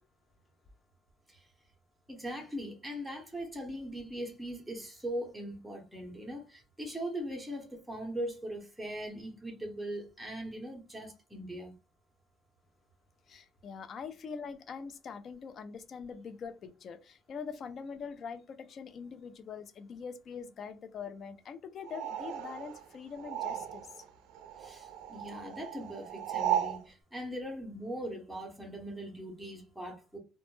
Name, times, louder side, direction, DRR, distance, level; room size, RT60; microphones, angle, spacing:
voice 1, 2.1-11.7 24.6-30.2, equal, ahead, 0.6 m, -40 dB
voice 2, 13.3-24.1, left 6 dB, 35° left, 0.3 m, -43 dB
sound 1, 21.8-24.1 24.3-26.8, right 10 dB, 75° right, 0.4 m, -36 dB
2.1 x 2.1 x 3.0 m
cardioid pair, 165°, 0 cm